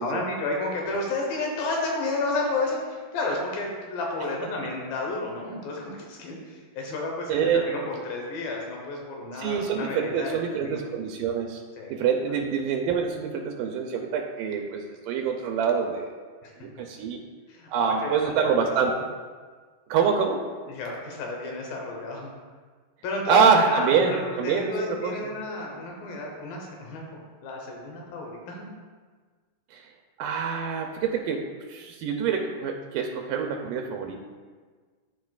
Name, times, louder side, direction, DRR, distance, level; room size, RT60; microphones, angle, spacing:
voice 1, 0.0-10.8 11.8-11.9 12.3-12.4 16.4-16.5 17.5-18.3 18.7-18.8 20.7-22.3 23.0-27.0 27.4-28.7, left 2 dB, 90° left, -1 dB, 2.9 m, -32 dB
voice 2, 7.3-7.6 9.3-11.6 11.9-16.1 16.6-17.2 17.7-19.0 19.9-20.4 23.3-25.2 29.7-29.9 30.2-31.4 31.7-34.2, right 6 dB, 80° right, 2 dB, 2.1 m, -25 dB
13.0 x 4.5 x 2.4 m, 1.5 s
omnidirectional pair, 4.0 m